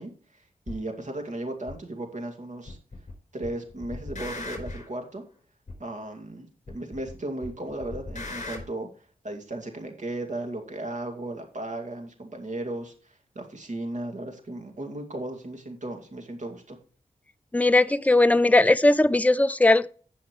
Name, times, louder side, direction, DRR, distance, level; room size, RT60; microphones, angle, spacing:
voice 1, 0.0-2.8 3.3-5.2 5.8-8.9 9.2-16.8, right 2 dB, 55° right, 2.3 m, -36 dB
sound 1, 0.7-0.8 1.7-1.8 2.7-3.1 3.4-4.9 5.7-5.8 6.7-7.1 7.4-8.6, left 2 dB, 55° left, 4.5 m, -37 dB
voice 2, 17.5-19.9, left 2 dB, 10° left, 0.5 m, -19 dB
16.5 x 5.8 x 3.2 m
wide cardioid pair, 65°, 15 cm